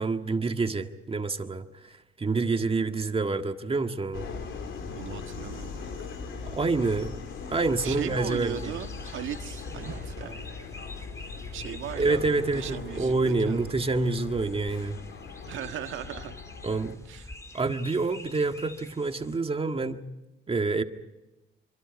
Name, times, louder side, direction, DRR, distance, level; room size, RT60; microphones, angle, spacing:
voice 1, 0.0-4.3 6.5-7.2 7.5-8.7 11.6-15.0 16.6-17.0 17.5-20.1 20.5-20.8, right 3 dB, 30° right, 6 dB, 1.7 m, -27 dB
Subway metro underground, 4.1-16.9, left 5 dB, 75° left, 3.2 m, -40 dB
voice 2, 4.9-6.0 7.8-10.5 11.3-13.8 15.5-16.4 17.1-17.3, right 11 dB, 80° right, 6 dB, 1.7 m, -38 dB
sound 1, 7.3-19.4, left 2 dB, 15° left, 2.1 m, -49 dB
sound 2, 9.6-10.2 12.0-12.6 12.9-13.0, right 6 dB, 60° right, 2.4 m, -45 dB
25.5 x 25.5 x 5.4 m, 0.99 s
cardioid pair, 90°, 20 cm